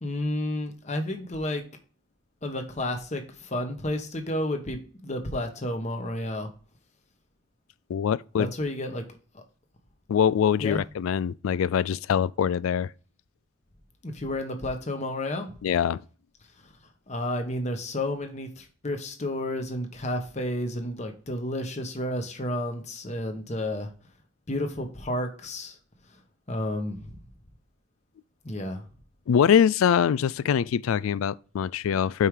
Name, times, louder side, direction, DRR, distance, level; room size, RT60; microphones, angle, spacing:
voice 1, 0.0-1.6 2.4-6.5 8.4-9.0 9.3-9.4 10.6-10.8 14.0-15.5 17.1-23.9 24.5-25.8 26.5-27.2 28.4-28.8, left 1 dB, 35° left, 1.1 m, -31 dB
voice 2, 7.9-8.5 10.1-12.9 15.6-16.0 29.3-32.3, left 8 dB, 85° left, 0.3 m, -23 dB
5.5 x 4.7 x 4.8 m
head